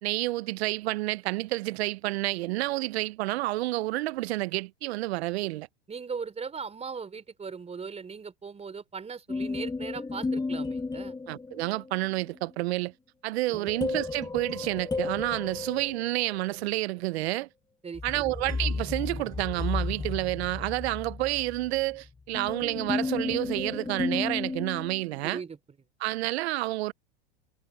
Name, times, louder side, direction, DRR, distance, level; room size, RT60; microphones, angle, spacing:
voice 1, 0.0-5.7 11.3-12.9 13.2-17.5 18.0-25.4 26.0-26.9, right 19 dB, 75° right, 0.8 m, -29 dB
voice 2, 5.9-11.1 13.5-13.7 17.8-18.3 25.2-25.6, right 5 dB, 20° right, 3.9 m, -39 dB
sound 1, 9.3-11.9 13.5-16.5 17.9-25.3, left 3 dB, 10° left, 1.9 m, -33 dB
hypercardioid pair, 105°, 32 cm